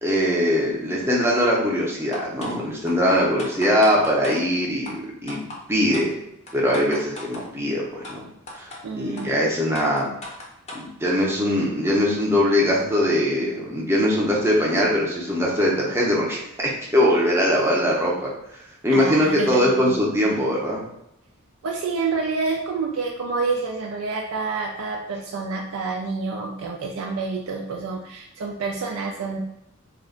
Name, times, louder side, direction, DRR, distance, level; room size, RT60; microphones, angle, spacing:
voice 1, 0.0-5.4 5.7-6.2 6.5-8.3 8.5-8.7 8.9-10.1 10.7-16.4 16.9-18.3 18.8-20.8, equal, 10° right, -4 dB, 0.6 m, -21 dB
sound 1, 2.1-2.6 2.9-3.0 3.4-4.4 4.8-4.9 5.3-5.6 5.9-6.1 6.5-7.4 8.0-8.1 8.5-8.8 9.2-9.3 9.7-10.9, left 2 dB, 30° left, 0.6 m, -36 dB
voice 2, 8.8-9.3 18.9-19.9 21.6-29.4, right 4 dB, 75° right, 0 dB, 0.4 m, -28 dB
2.4 x 2.1 x 3.6 m, 0.80 s
head